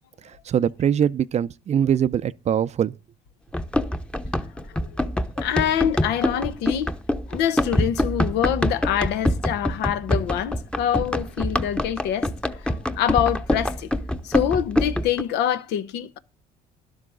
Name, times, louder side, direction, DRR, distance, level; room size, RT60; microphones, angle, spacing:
voice 1, 0.5-2.9, right 9 dB, 40° right, 0.5 m, -22 dB
Run, 3.5-15.2, left 1 dB, 5° left, 0.9 m, -25 dB
voice 2, 5.4-6.9 7.3-13.9 14.2-16.2, left 10 dB, 85° left, 1.0 m, -25 dB
12.0 x 11.5 x 3.8 m
cardioid pair, 110°, 17 cm